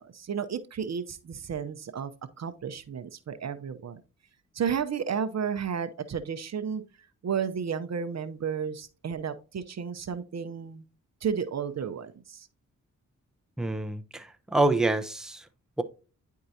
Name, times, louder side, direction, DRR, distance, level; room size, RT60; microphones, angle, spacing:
voice 1, 0.0-2.1 2.4-4.0 4.5-6.8 7.2-10.8 11.2-12.5, right 7 dB, 50° right, 0.7 m, -32 dB
voice 2, 13.6-15.5 15.8-15.9, right 2 dB, ahead, 0.8 m, -27 dB
9.8 x 4.7 x 2.7 m
cardioid pair, 55°, 33 cm